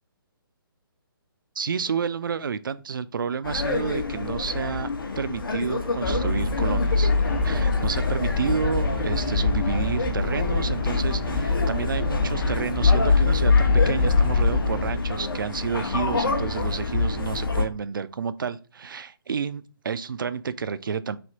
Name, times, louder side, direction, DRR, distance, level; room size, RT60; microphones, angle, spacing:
voice 1, 1.6-4.9 5.2-7.1 7.4-21.2, right 6 dB, 60° right, 0.4 m, -30 dB
sound 1, 3.4-17.6, left 4 dB, 65° left, 0.8 m, -25 dB
sound 2, 6.0-14.9, left 2 dB, 30° left, 0.9 m, -27 dB
3.3 x 2.7 x 3.9 m
figure-of-eight pair, 140°, 12 cm